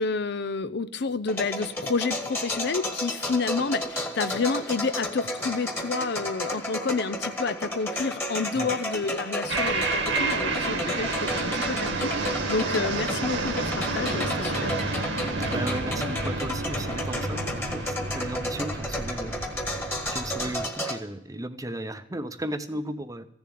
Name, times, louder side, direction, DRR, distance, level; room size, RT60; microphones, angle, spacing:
voice 1, 0.0-14.8, left 4 dB, 60° left, 13 dB, 0.6 m, -29 dB
sound 1, 1.3-21.0, left 1 dB, 15° left, 1.5 m, -33 dB
sound 2, 9.5-20.7, right 3 dB, 85° right, 2.2 m, -30 dB
voice 2, 15.5-19.4 20.1-23.3, right 1 dB, 20° right, 10 dB, 0.8 m, -35 dB
15.0 x 7.1 x 9.3 m, 0.71 s
head